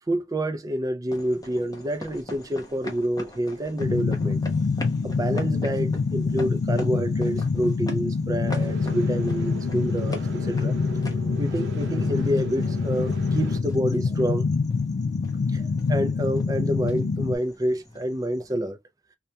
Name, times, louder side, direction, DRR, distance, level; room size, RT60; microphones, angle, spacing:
voice 1, 0.1-4.4 5.0-10.7 11.4-14.4 15.5-15.6 15.9-18.8, right 1 dB, 20° right, 0.4 m, -28 dB
sound 1, 1.1-18.5, left 1 dB, 20° left, 0.6 m, -43 dB
sound 2, 3.8-17.4, left 4 dB, 75° left, 0.4 m, -26 dB
sound 3, 8.5-13.6, right 1 dB, 80° right, 0.6 m, -39 dB
2.3 x 2.2 x 2.7 m
head